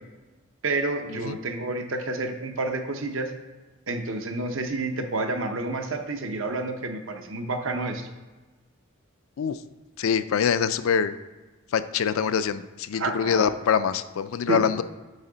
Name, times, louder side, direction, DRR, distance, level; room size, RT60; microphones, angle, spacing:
voice 1, 0.6-3.3 3.9-8.1 13.0-13.5 14.5-14.7, right 2 dB, 65° right, 5 dB, 0.7 m, -29 dB
voice 2, 10.0-11.1 11.7-14.8, left 7 dB, 75° left, 13 dB, 0.4 m, -24 dB
8.3 x 3.6 x 3.9 m, 1.2 s
head